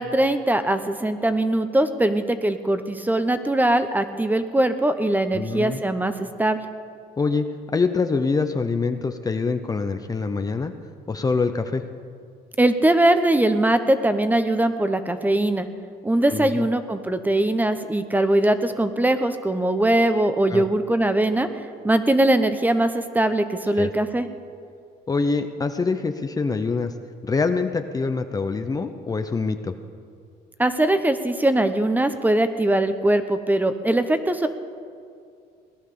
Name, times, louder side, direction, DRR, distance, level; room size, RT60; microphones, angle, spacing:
voice 1, 0.0-6.1 6.4-6.6 12.6-15.7 16.0-21.5 21.8-24.3 30.6-34.5, right 1 dB, 10° right, 9 dB, 0.9 m, -21 dB
voice 2, 5.3-5.8 7.2-10.7 11.1-11.8 16.3-16.7 20.5-20.6 23.8-23.9 25.1-26.9 27.3-29.7, left 4 dB, 20° left, 8 dB, 0.7 m, -25 dB
18.0 x 11.0 x 6.8 m, 2.3 s
cardioid pair, 110°, 17 cm